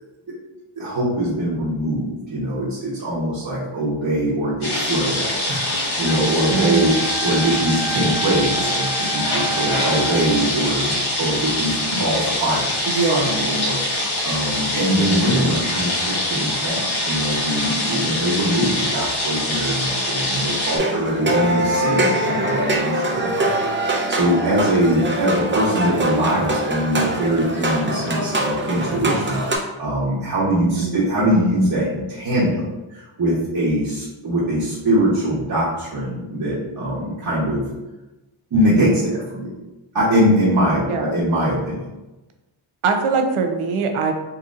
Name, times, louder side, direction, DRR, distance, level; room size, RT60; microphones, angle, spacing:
voice 1, 0.8-7.0 7.2-37.6 38.5-39.5 39.9-41.8, right 1 dB, 50° right, -10 dB, 1.0 m, -22 dB
sound 1, 4.6-20.8, left 1 dB, 80° left, 1.3 m, -24 dB
Wind instrument woodwind instrument, 6.0-10.5, right 3 dB, 30° left, 0.4 m, -31 dB
voice 2, 6.5-7.0 12.9-13.5 30.8-31.1 40.9-41.1 42.8-44.1, right 4 dB, 90° right, 5 dB, 0.6 m, -22 dB
sound 2, 20.7-29.6, right 1 dB, 25° right, 0.5 m, -23 dB
3.9 x 2.7 x 2.4 m, 1.0 s
wide cardioid pair, 90°, 49 cm